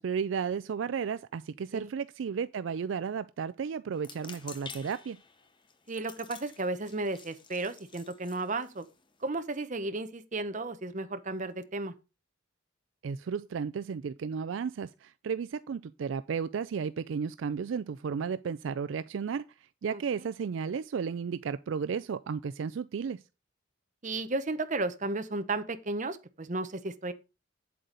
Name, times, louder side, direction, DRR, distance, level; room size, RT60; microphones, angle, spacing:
voice 1, 0.0-5.2 13.0-19.4 19.8-23.2, right 6 dB, 65° right, 0.4 m, -33 dB
sound 1, 3.9-9.3, left 6 dB, 25° left, 0.7 m, -50 dB
voice 2, 5.9-8.9 9.2-11.9 19.9-20.0 24.0-27.1, right 2 dB, 40° right, 0.8 m, -34 dB
8.2 x 7.7 x 3.9 m
head